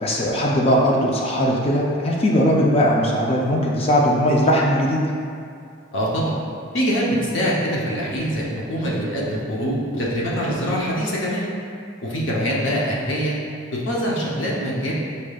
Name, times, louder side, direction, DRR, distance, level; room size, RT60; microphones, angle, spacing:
voice 1, 0.0-5.0, equal, 30° left, -2 dB, 0.5 m, -19 dB
voice 2, 5.9-6.3 6.7-11.5 12.0-13.4 13.7-14.9, equal, 60° left, -4 dB, 0.8 m, -24 dB
5.0 x 4.2 x 2.3 m, 2.4 s
head